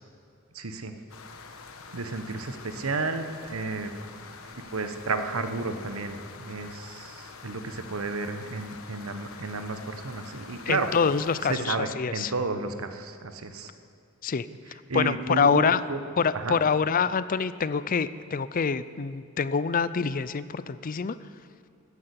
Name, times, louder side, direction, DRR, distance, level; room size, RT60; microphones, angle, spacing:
voice 1, 0.5-0.9 1.9-3.9 4.4-11.0 11.4-13.7 14.7-16.0 16.3-16.6, right 3 dB, 80° right, 8 dB, 1.1 m, -32 dB
sound 1, 1.1-11.6, left 4 dB, 75° left, 1.2 m, -46 dB
voice 2, 10.7-12.3 14.2-14.5 14.9-15.8 16.2-21.2, left 6 dB, 40° left, 16 dB, 0.4 m, -26 dB
14.5 x 9.7 x 8.2 m, 2.6 s
head